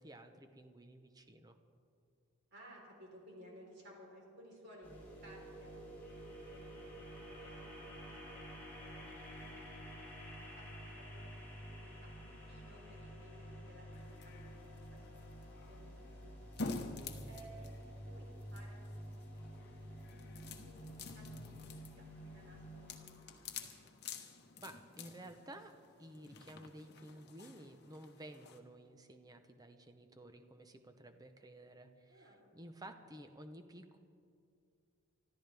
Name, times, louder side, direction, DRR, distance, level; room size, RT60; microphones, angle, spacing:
voice 1, 0.0-1.6 24.6-34.0, right 1 dB, 15° right, 7 dB, 0.8 m, -53 dB
voice 2, 2.5-6.1 6.4-8.4 8.8-9.7 10.0-11.3 11.6-15.3 15.7-16.8 17.2-19.0 19.3-21.4 21.7-23.7 32.1-32.5, right 1 dB, 50° right, -2 dB, 3.8 m, -59 dB
sound 1, 4.8-22.9, equal, 10° left, 4.7 m, -50 dB
sound 2, 13.9-28.6, left 3 dB, 50° left, 1.1 m, -50 dB
25.0 x 13.5 x 3.4 m, 2.4 s
head